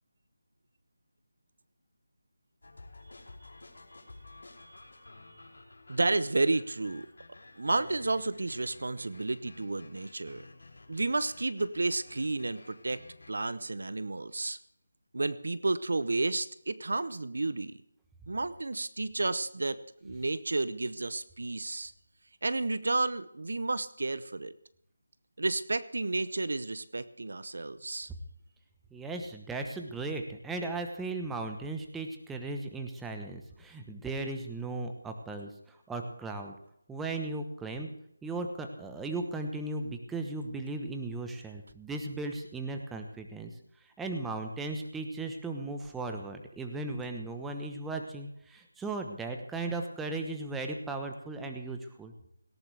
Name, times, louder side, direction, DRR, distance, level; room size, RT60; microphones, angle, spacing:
sound 1, 2.6-13.3, left 2 dB, 70° left, 5.3 m, -53 dB
voice 1, 5.9-7.1 7.6-10.4 10.9-13.0 13.3-14.6 15.1-17.7 18.3-21.9 22.4-24.5 25.4-28.1, right 2 dB, 65° right, 15 dB, 0.8 m, -31 dB
voice 2, 28.9-36.5 36.9-37.9 38.2-43.5 44.0-52.1, right 2 dB, 5° right, 4 dB, 1.1 m, -37 dB
18.0 x 17.5 x 3.5 m, 0.71 s
figure-of-eight pair, 160°, 0 cm